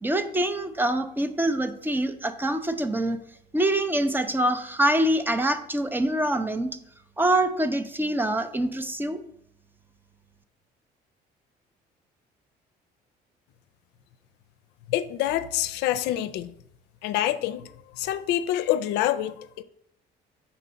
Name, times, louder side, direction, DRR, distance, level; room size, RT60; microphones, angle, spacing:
voice 1, 0.0-3.2 3.5-6.7 7.2-9.2, right 1 dB, 10° right, 10 dB, 0.5 m, -25 dB
voice 2, 14.9-16.5 17.0-19.6, left 12 dB, 85° left, 14 dB, 0.4 m, -27 dB
5.1 x 4.2 x 5.6 m, 0.71 s
cardioid pair, 110°, 17 cm